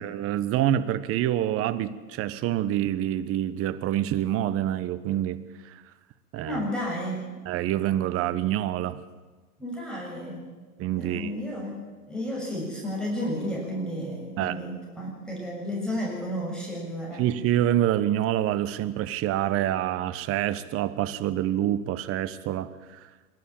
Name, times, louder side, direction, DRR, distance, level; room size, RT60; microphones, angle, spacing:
voice 1, 0.0-5.8 6.3-6.7 7.5-9.0 10.8-11.3 14.4-14.6 17.2-23.1, right 12 dB, 30° right, 14 dB, 1.1 m, -27 dB
voice 2, 6.4-7.3 9.6-10.5 11.0-17.3, equal, ahead, -4 dB, 6.9 m, -32 dB
27.0 x 12.5 x 8.7 m, 1.3 s
hypercardioid pair, 110°, 46 cm